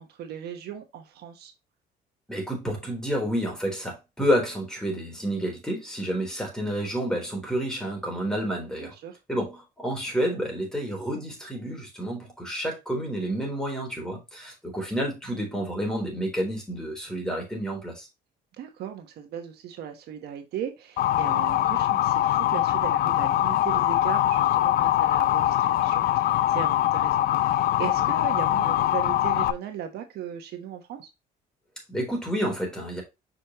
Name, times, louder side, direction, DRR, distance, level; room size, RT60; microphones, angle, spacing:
voice 1, 0.0-1.5 8.8-9.2 18.6-31.1, right 9 dB, 75° right, 1.2 m, -37 dB
voice 2, 2.3-8.9 9.3-18.1 31.9-33.0, equal, 5° left, 3.8 m, -29 dB
Motor vehicle (road) / Siren, 21.0-29.5, left 13 dB, 60° left, 0.5 m, -23 dB
6.4 x 5.2 x 3.0 m
cardioid pair, 110°, 17 cm